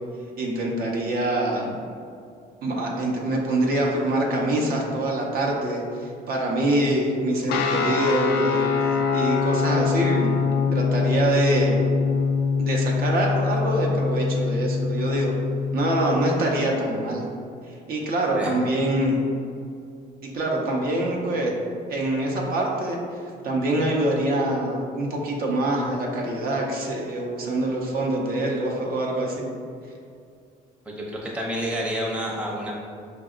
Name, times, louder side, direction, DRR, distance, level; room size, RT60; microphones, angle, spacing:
voice 1, 0.4-1.7 2.6-8.6 9.1-10.3 10.7-11.7 12.6-15.4 15.7-17.2 17.7-19.1 20.2-21.5 21.9-23.0 23.4-29.4, right 1 dB, 60° right, -1 dB, 0.7 m, -25 dB
sound 1, 7.5-16.4, left 5 dB, 75° left, 0.4 m, -24 dB
voice 2, 30.9-32.7, equal, 5° right, -3 dB, 0.6 m, -29 dB
5.0 x 2.6 x 2.4 m, 2.4 s
cardioid pair, 110°, 17 cm